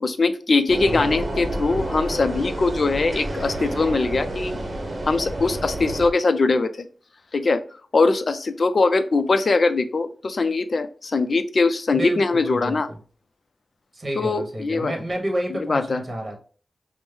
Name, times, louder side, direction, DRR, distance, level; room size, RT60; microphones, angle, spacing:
voice 1, 0.0-4.6 5.1-6.9 7.3-7.6 7.9-12.9 14.2-14.9 15.5-16.0, left 3 dB, 55° left, 10 dB, 0.4 m, -21 dB
sound 1, 0.7-6.1, right 1 dB, 50° right, 0.8 m, -29 dB
voice 2, 11.9-12.8 13.9-16.4, right 1 dB, 35° right, 1 dB, 1.2 m, -29 dB
5.2 x 2.1 x 3.3 m, 0.41 s
wide cardioid pair, 115°, 0 cm